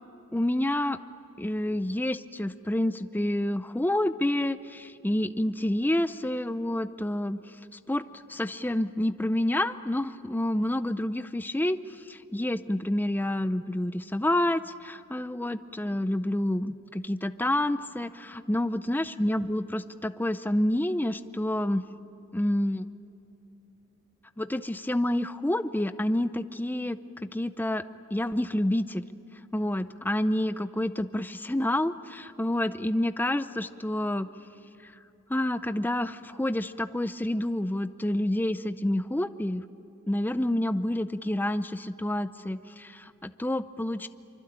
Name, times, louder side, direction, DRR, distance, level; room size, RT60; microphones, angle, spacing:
voice 1, 0.3-1.0 1.4-7.4 7.9-8.0 8.3-21.8 22.3-22.9 24.4-27.8 28.1-29.0 29.5-34.3 34.8-34.9 35.3-39.6 40.1-44.1, left 1 dB, 10° left, 12 dB, 0.5 m, -28 dB
25.0 x 24.5 x 8.8 m, 2.9 s
head